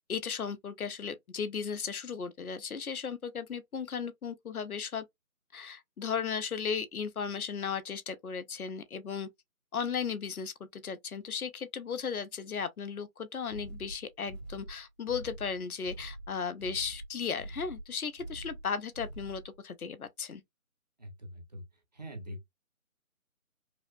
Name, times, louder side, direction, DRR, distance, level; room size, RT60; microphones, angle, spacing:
voice 1, 0.1-5.0 5.5-9.3 9.7-20.4, left 6 dB, 85° left, 0.8 m, -36 dB
sound 1, 13.5-19.5, right 2 dB, 45° right, 1.3 m, -45 dB
voice 2, 21.0-21.6 21.9-22.4, equal, 30° right, 0.8 m, -43 dB
4.8 x 2.0 x 2.4 m
figure-of-eight pair, 165°, 43 cm